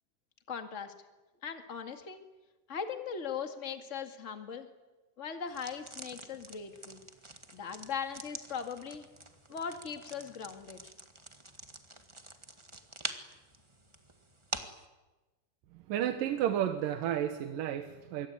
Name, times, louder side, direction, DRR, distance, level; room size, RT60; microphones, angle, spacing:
voice 1, 0.5-0.9 1.4-2.2 2.7-4.7 5.2-7.0 7.5-9.1 9.5-10.8, left 6 dB, 25° left, 6 dB, 1.9 m, -39 dB
sound 1, 5.5-14.8, right 2 dB, 15° right, 0.9 m, -46 dB
voice 2, 15.9-18.3, right 10 dB, 90° right, 7 dB, 3.0 m, -32 dB
25.5 x 23.5 x 9.6 m, 1.2 s
omnidirectional pair, 3.8 m